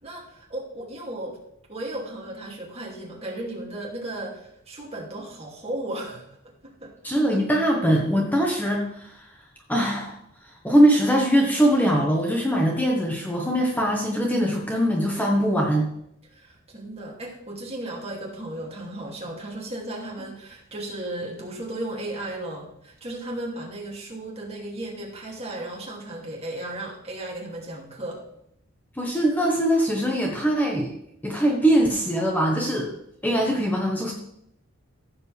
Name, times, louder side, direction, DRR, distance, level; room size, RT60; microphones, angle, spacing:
voice 1, 0.0-1.4 1.7-6.3 6.6-6.9 16.3-28.2, right 1 dB, 30° right, -2 dB, 2.6 m, -35 dB
voice 2, 7.0-9.3 9.7-10.2 10.6-15.9 28.9-30.9 31.2-32.9 33.2-34.1, equal, 10° left, -1 dB, 1.3 m, -22 dB
15.5 x 7.5 x 3.4 m, 0.76 s
head